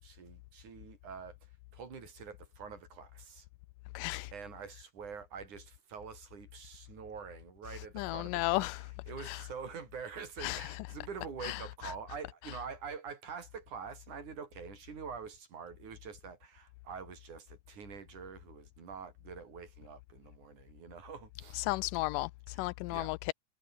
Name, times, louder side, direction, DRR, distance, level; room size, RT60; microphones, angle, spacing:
voice 1, 0.0-1.4 1.7-3.5 4.3-21.6 22.5-23.1, right 6 dB, 65° right, 5.4 m, -46 dB
voice 2, 4.0-4.3 8.0-8.8 9.3-9.4 10.4-10.6 11.4-11.6 21.6-22.3 22.6-23.3, left 22 dB, 85° left, 2.2 m, -33 dB
omnidirectional pair, 3.7 m